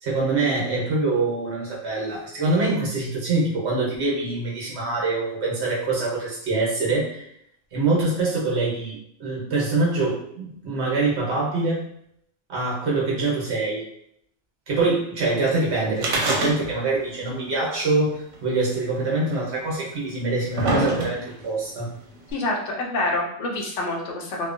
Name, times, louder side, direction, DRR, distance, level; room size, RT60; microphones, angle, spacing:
voice 1, 0.0-7.3 7.7-11.8 12.5-13.8 14.7-21.9, right 3 dB, 65° right, -4 dB, 1.1 m, -24 dB
sound 1, 16.0-17.0 17.3-17.4 18.3-18.4 19.3-19.4 20.1-21.4 22.3-22.4, right 2 dB, 85° right, 1.0 m, -24 dB
voice 2, 22.3-24.5, left 2 dB, 75° left, -1 dB, 0.9 m, -27 dB
2.8 x 2.1 x 2.5 m, 0.71 s
omnidirectional pair, 1.3 m